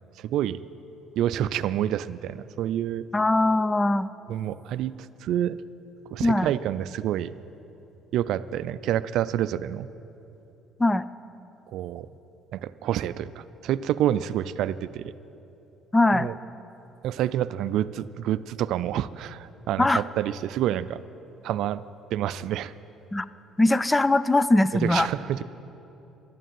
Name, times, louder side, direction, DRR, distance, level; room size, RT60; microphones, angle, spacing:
voice 1, 0.2-0.6 1.2-3.1 4.3-5.6 6.1-7.3 8.1-9.9 11.7-12.1 12.5-15.1 16.1-16.3 17.0-21.0 21.4-21.9 22.1-22.7 24.8-25.4, right 11 dB, 70° right, 15 dB, 0.4 m, -28 dB
voice 2, 3.1-4.1 6.2-6.5 10.8-11.1 15.9-16.3 19.8-20.0 23.1-23.3 23.6-25.1, left 2 dB, 15° left, 16 dB, 0.4 m, -21 dB
12.5 x 9.1 x 9.1 m, 3.0 s
cardioid pair, 90°, 0 cm